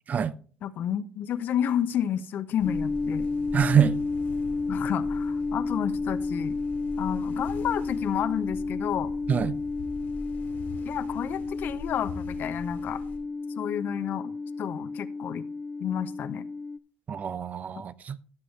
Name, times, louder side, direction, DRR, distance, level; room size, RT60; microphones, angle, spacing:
voice 1, 0.6-3.3 4.7-6.6 7.0-9.1 10.8-13.0 13.6-15.4 15.8-16.4, left 9 dB, 65° left, 0.7 m, -31 dB
sound 1, 2.6-13.2, left 3 dB, 80° left, 2.8 m, -43 dB
sound 2, 2.6-16.8, left 3 dB, 25° left, 0.4 m, -31 dB
voice 2, 3.5-4.0 9.3-9.6 17.1-18.2, right 8 dB, 45° right, 0.5 m, -25 dB
15.0 x 6.3 x 3.2 m
supercardioid pair, 80°, 4 cm